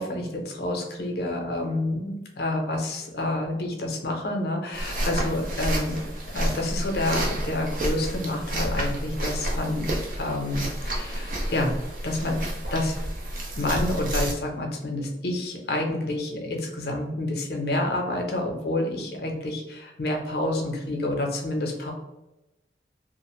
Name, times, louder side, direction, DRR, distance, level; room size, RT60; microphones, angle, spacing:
voice 1, 0.0-6.0 6.3-9.9 10.2-11.7 12.0-12.4 12.7-13.0 13.5-21.9, left 1 dB, 60° left, 1 dB, 0.6 m, -28 dB
sound 1, 4.7-14.3, right 1 dB, 50° right, 0.5 m, -30 dB
2.4 x 2.0 x 2.9 m, 0.96 s
head